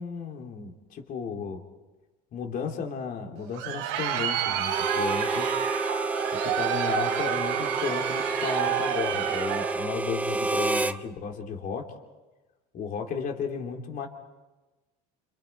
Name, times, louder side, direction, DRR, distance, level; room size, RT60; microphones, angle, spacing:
voice 1, 0.0-1.6 2.3-5.6 6.3-11.9 12.7-14.1, left 6 dB, 45° left, 3 dB, 3.2 m, -34 dB
Crowd, 3.4-9.9, right 10 dB, 85° right, 2.9 m, -29 dB
Harmonica, 4.6-11.0, right 2 dB, 10° right, 0.7 m, -30 dB
29.0 x 27.5 x 4.6 m, 1.2 s
cardioid pair, 125°, 19 cm